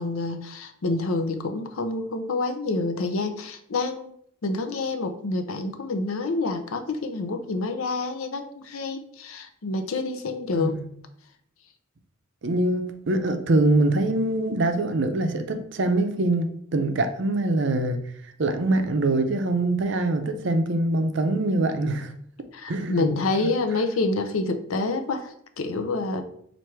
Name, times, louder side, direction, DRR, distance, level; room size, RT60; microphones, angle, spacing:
voice 1, 0.0-4.1 4.4-10.8 22.5-26.2, left 3 dB, 85° left, 7 dB, 0.6 m, -28 dB
voice 2, 12.4-18.0 18.4-22.1 22.7-23.1 23.4-23.5, right 2 dB, 60° right, 7 dB, 0.5 m, -24 dB
4.6 x 2.6 x 4.5 m, 0.68 s
head